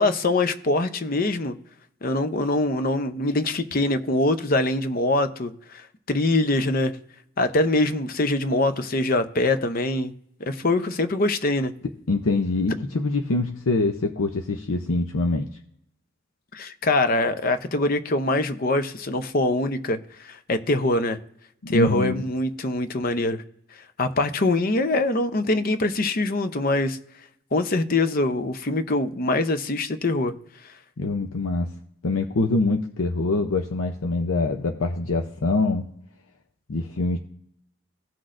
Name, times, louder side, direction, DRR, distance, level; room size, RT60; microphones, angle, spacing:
voice 1, 0.0-1.6 2.0-5.8 6.1-6.9 7.4-10.1 10.4-11.7 16.5-21.2 21.7-23.4 24.0-27.0 27.5-30.3, left 2 dB, 45° left, 0.7 m, -23 dB
voice 2, 12.1-15.5 21.6-22.3 31.0-31.7 32.0-35.9 36.7-37.2, left 3 dB, 90° left, 0.6 m, -24 dB
16.5 x 6.0 x 2.5 m
head